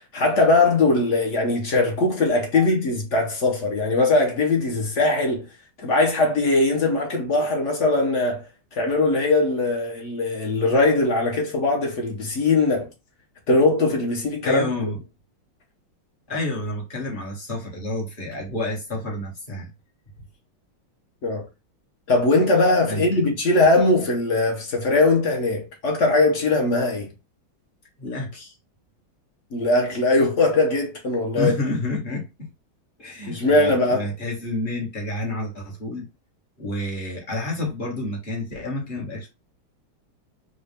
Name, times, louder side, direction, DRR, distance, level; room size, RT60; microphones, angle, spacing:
voice 1, 0.1-5.5 5.8-8.4 8.7-12.9 13.5-14.7 21.2-21.5 22.1-27.1 29.5-31.5 33.3-34.0, left 2 dB, 55° left, 0.8 m, -20 dB
voice 2, 14.4-15.0 16.3-19.7 22.9-23.2 28.0-28.6 31.3-32.3 33.0-36.1 36.6-39.3, left 2 dB, 30° left, 1.2 m, -29 dB
4.0 x 2.3 x 3.3 m
omnidirectional pair, 2.2 m